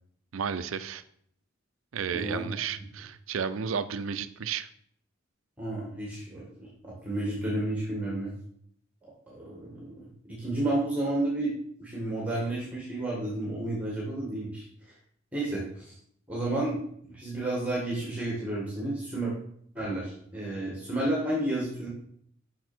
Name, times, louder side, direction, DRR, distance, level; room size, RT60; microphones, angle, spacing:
voice 1, 0.3-1.0 1.9-4.7, right 6 dB, 75° right, 13 dB, 0.5 m, -32 dB
voice 2, 2.1-2.4 5.6-8.3 9.0-11.5 11.8-14.9 15.3-15.9 16.3-19.3 19.7-21.9, right 1 dB, 5° right, -4 dB, 1.7 m, -31 dB
6.1 x 6.0 x 4.4 m, 0.65 s
head